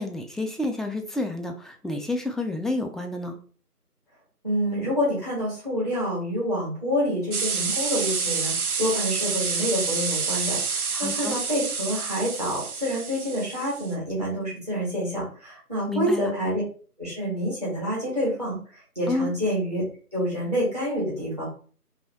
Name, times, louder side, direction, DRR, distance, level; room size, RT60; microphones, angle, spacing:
voice 1, 0.0-3.4 10.9-11.4 15.9-16.3 19.1-19.3, left 2 dB, ahead, 4 dB, 0.3 m, -29 dB
voice 2, 4.4-16.6 17.0-19.8 20.1-21.5, equal, 25° right, -7 dB, 1.3 m, -27 dB
sound 1, 7.3-13.9, right 5 dB, 65° right, 0.6 m, -28 dB
3.0 x 2.8 x 2.9 m, 0.41 s
figure-of-eight pair, 175°, 47 cm